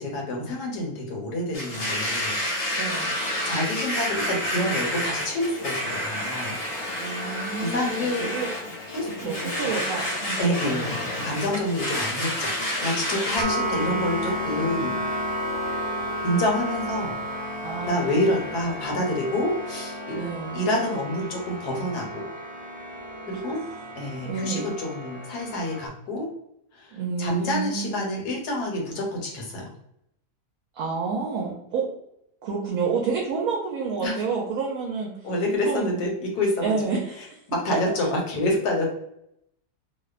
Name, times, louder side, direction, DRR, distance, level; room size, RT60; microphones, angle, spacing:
voice 1, 0.0-2.3 3.5-6.6 7.6-8.3 8.9-9.7 10.4-15.0 16.2-17.2 17.9-20.2 20.5-22.3 23.3-23.6 24.0-26.3 26.7-26.9 27.2-29.7 34.0-34.1 35.2-36.7 37.5-38.9, left 1 dB, 75° left, 0 dB, 1.3 m, -27 dB
Domestic sounds home sounds, 1.5-13.4, left 1 dB, 50° left, 0.8 m, -29 dB
voice 2, 2.7-3.2 6.9-8.5 9.2-11.0 17.6-18.1 20.2-20.7 24.2-24.7 26.9-28.1 30.7-31.9 32.4-35.1 35.7-35.9 36.6-37.4, right 5 dB, 70° right, -2 dB, 0.9 m, -29 dB
sound 1, 13.3-25.9, equal, 20° right, 0.9 m, -32 dB
2.8 x 2.1 x 2.3 m, 0.77 s
omnidirectional pair, 1.7 m